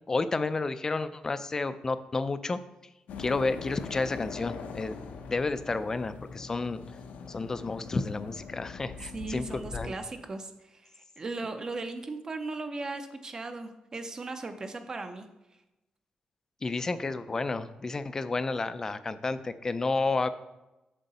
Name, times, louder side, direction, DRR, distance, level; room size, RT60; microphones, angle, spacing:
voice 1, 0.1-2.6 3.2-5.0 5.3-6.8 7.3-9.9 16.6-20.3, left 3 dB, 20° left, 13 dB, 0.4 m, -31 dB
sound 1, 3.1-9.9, left 5 dB, 85° left, 0.8 m, -42 dB
voice 2, 9.1-15.3, right 3 dB, 25° right, 7 dB, 0.5 m, -37 dB
7.7 x 6.3 x 4.1 m, 0.98 s
wide cardioid pair, 160°, 2 cm